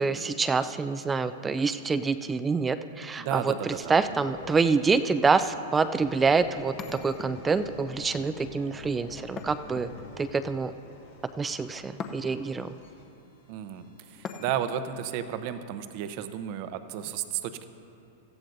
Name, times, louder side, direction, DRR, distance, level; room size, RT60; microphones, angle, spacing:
voice 1, 0.0-6.7 7.0-9.9 10.2-10.7 11.4-12.7, right 4 dB, 15° right, 11 dB, 0.4 m, -26 dB
voice 2, 3.2-4.2 13.5-17.7, right 10 dB, 50° right, 10 dB, 0.7 m, -33 dB
sound 1, 3.8-14.7 15.2-15.5, left 2 dB, 85° left, 2.5 m, -48 dB
sound 2, 6.8-7.7 9.4-10.3 12.0-12.6 14.2-14.9, left 5 dB, 30° left, 0.8 m, -41 dB
18.5 x 14.0 x 2.6 m, 2.7 s
hypercardioid pair, 120°, 0 cm